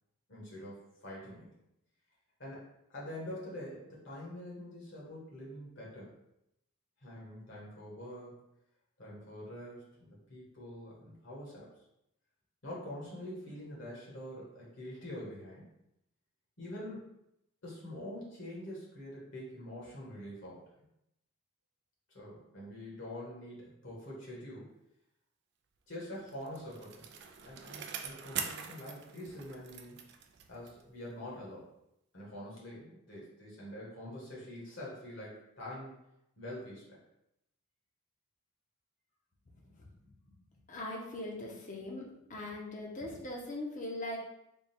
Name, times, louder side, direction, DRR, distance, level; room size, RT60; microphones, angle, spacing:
voice 1, 0.3-1.5 2.4-6.1 7.0-8.5 9.0-11.7 12.6-15.7 16.6-17.1 17.6-20.7 22.1-24.7 25.9-27.1 27.4-30.1 30.5-31.7 32.1-35.9 36.4-37.0, left 1 dB, 55° left, -4 dB, 1.2 m, -45 dB
Bicycle, 26.0-30.9 31.3-31.4, right 7 dB, 50° right, 0.3 m, -43 dB
voice 2, 39.5-39.9 40.7-44.2, left 1 dB, 35° left, -2 dB, 0.7 m, -41 dB
3.6 x 2.3 x 4.2 m, 0.82 s
head